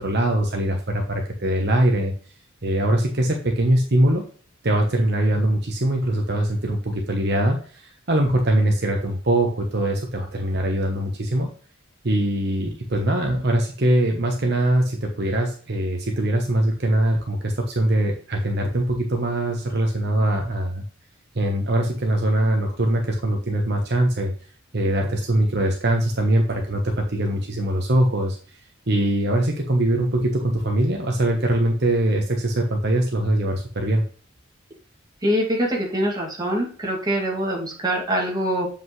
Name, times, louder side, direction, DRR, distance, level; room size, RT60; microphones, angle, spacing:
voice 1, 0.0-2.1 2.6-4.2 4.6-11.5 12.0-20.8 21.3-24.3 24.7-28.4 28.9-34.0, right 1 dB, 50° right, 2 dB, 1.0 m, -22 dB
voice 2, 35.2-38.7, equal, 20° right, -2 dB, 2.3 m, -24 dB
7.7 x 5.2 x 3.2 m, 0.43 s
head